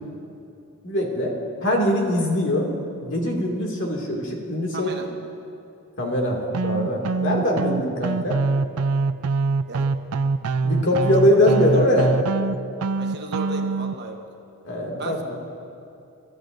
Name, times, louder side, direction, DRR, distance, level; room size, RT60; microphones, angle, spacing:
voice 1, 0.8-2.7 3.0-4.9 6.0-8.4 10.6-12.1 14.6-15.4, left 1 dB, 55° left, -1 dB, 2.3 m, -22 dB
voice 2, 4.7-5.1 9.7-9.9 11.1-11.5 11.7-11.9 13.0-14.2 15.0-15.2, right 3 dB, 50° right, 3 dB, 1.1 m, -34 dB
sound 1, 6.5-13.9, right 4 dB, 85° right, 0.5 m, -24 dB
25.0 x 13.5 x 2.6 m, 2.6 s
head